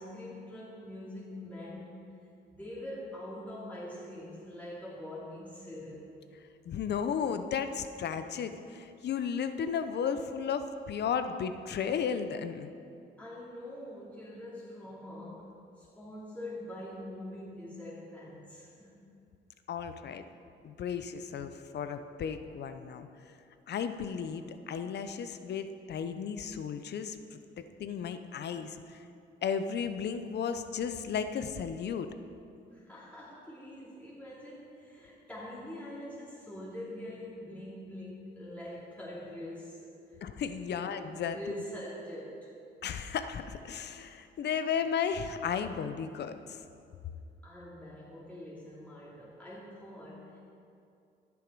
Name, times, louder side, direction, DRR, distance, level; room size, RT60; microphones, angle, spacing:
voice 1, 0.0-2.2 2.5-6.1 13.2-19.0 32.7-40.2 40.7-42.5 47.4-50.4, left 1 dB, 5° left, -8 dB, 2.8 m, -44 dB
voice 2, 6.7-12.7 19.7-20.2 20.6-23.1 23.7-27.4 27.8-29.0 29.4-32.1 40.2-41.4 42.8-46.6, left 7 dB, 60° left, 9 dB, 0.7 m, -34 dB
11.0 x 9.6 x 4.7 m, 2.6 s
cardioid pair, 90°, 20 cm